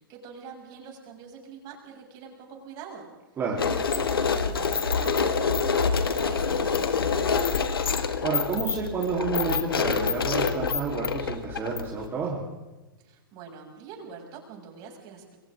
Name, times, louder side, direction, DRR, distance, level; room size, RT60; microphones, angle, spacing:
voice 1, 0.0-3.1 3.6-7.6 13.0-15.4, right 6 dB, 35° right, 0 dB, 7.1 m, -44 dB
sound 1, 3.6-12.1, left 5 dB, 85° left, 2.1 m, -26 dB
voice 2, 8.2-12.4, right 5 dB, 20° right, -4 dB, 3.7 m, -30 dB
29.0 x 23.5 x 3.8 m, 1.1 s
hypercardioid pair, 125°, 12 cm